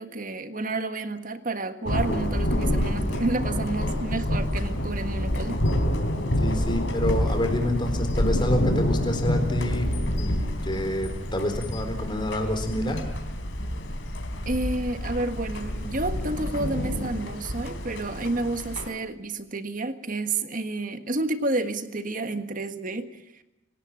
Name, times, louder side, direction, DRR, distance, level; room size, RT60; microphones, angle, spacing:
voice 1, 0.0-5.7 14.4-23.4, right 2 dB, 45° right, 9 dB, 1.6 m, -30 dB
Thunder, 1.9-18.9, equal, 70° left, 3.6 m, -27 dB
voice 2, 6.4-9.9 10.2-13.0, left 1 dB, 25° left, 6 dB, 4.0 m, -28 dB
26.5 x 18.0 x 8.9 m, 0.94 s
head